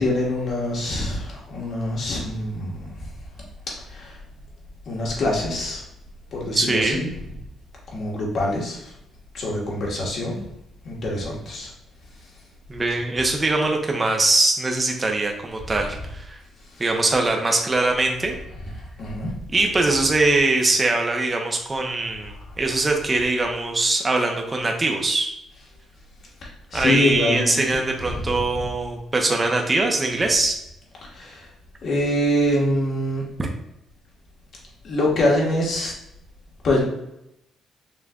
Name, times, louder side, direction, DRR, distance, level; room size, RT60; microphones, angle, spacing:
voice 1, 0.0-3.1 3.8-4.2 4.8-5.8 6.3-7.1 7.9-8.9 9.3-10.4 10.8-11.7 16.7-16.8 18.8-19.4 26.4-28.4 31.0-31.5 31.8-33.3 34.8-35.9 36.6-36.8, left 1 dB, 60° left, -3 dB, 1.6 m, -25 dB
voice 2, 6.5-7.0 12.7-16.4 16.8-18.4 19.5-25.3 26.7-30.6 33.4-33.5, right 2 dB, 25° right, 2 dB, 0.8 m, -22 dB
5.6 x 3.3 x 2.5 m, 0.83 s
cardioid pair, 90°, 0 cm